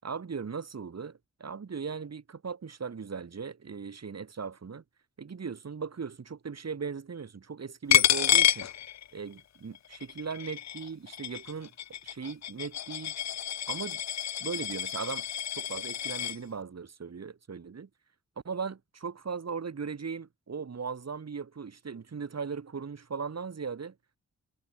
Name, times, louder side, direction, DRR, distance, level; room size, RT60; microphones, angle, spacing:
voice 1, 0.0-4.8 5.2-8.7 9.1-11.7 12.0-13.1 13.7-14.0 14.4-15.3 15.5-17.9 18.4-23.9, right 5 dB, 60° right, 5.4 m, -38 dB
Coin (dropping), 7.9-9.4 9.8-16.4, left 10 dB, 65° left, 0.5 m, -29 dB
wide cardioid pair, 150°, 29 cm